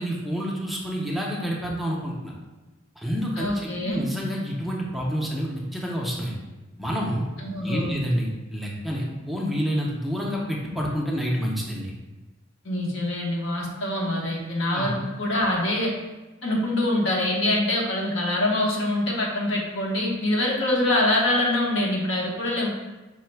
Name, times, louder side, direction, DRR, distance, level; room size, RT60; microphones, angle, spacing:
voice 1, 0.0-2.3 3.0-6.4 6.8-7.3 7.6-11.9 14.7-14.9, equal, ahead, -3 dB, 0.5 m, -28 dB
voice 2, 3.4-4.0 7.4-7.9 12.6-15.9 16.4-22.7, left 1 dB, 70° left, -2 dB, 0.9 m, -24 dB
4.7 x 2.1 x 4.4 m, 1.1 s
head